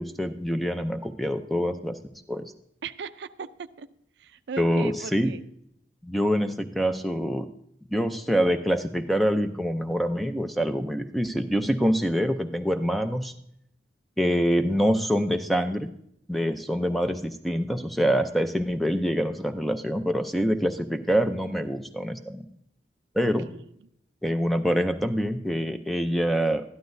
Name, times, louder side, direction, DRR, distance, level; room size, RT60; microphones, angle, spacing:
voice 1, 0.0-1.9 2.3-2.5 4.6-5.3 6.0-7.5 7.9-13.3 14.2-15.9 16.3-22.5 23.1-23.5 24.2-26.6, equal, ahead, 7 dB, 0.5 m, -25 dB
voice 2, 2.8-3.9 4.2-5.5 23.2-23.6, right 5 dB, 70° right, 13 dB, 0.4 m, -38 dB
12.5 x 11.5 x 2.6 m, 0.72 s
head